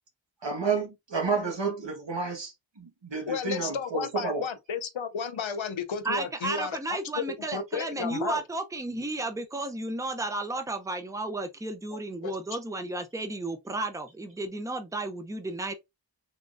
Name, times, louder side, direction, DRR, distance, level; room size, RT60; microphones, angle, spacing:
voice 1, 0.4-4.4, right 5 dB, 65° right, 1.5 m, -30 dB
voice 2, 3.3-7.2 7.5-8.4 11.9-12.3, left 6 dB, 80° left, 0.7 m, -33 dB
voice 3, 6.0-15.7, right 2 dB, 5° right, 0.6 m, -33 dB
3.7 x 3.2 x 2.5 m
wide cardioid pair, 45°, 46 cm